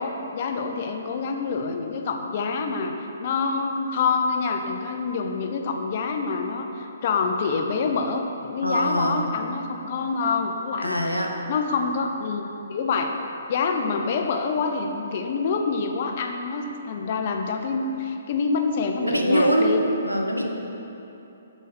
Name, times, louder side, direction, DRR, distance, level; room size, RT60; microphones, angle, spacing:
voice 1, 0.0-2.9 3.2-11.0 11.5-13.2 13.5-19.8, left 4 dB, 40° left, 4 dB, 0.5 m, -26 dB
voice 2, 8.6-9.3 10.8-11.4 19.0-19.7 20.0-20.5, equal, 90° right, 1 dB, 0.7 m, -23 dB
6.3 x 4.0 x 5.7 m, 3.0 s
figure-of-eight pair, 130°, 0 cm